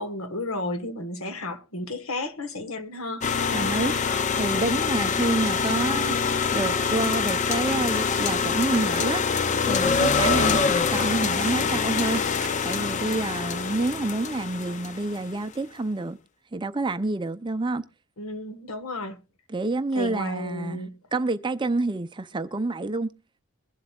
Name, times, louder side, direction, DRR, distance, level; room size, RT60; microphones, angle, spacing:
voice 1, 0.0-3.2 4.9-5.1 18.2-19.2 19.9-20.9, left 1 dB, 70° left, 1.4 m, -33 dB
sound 1, 3.2-15.2, left 5 dB, 35° left, 0.5 m, -25 dB
voice 2, 3.5-3.9 4.3-6.2 6.5-12.2 12.6-16.2 16.5-17.8 19.5-20.8 21.1-23.1, right 2 dB, 20° right, 0.5 m, -28 dB
sound 2, 7.7-8.1 8.6-9.1 10.6-11.1 11.4-11.8 12.1-12.5, right 7 dB, 50° right, 0.8 m, -41 dB
22.0 x 7.7 x 2.3 m
head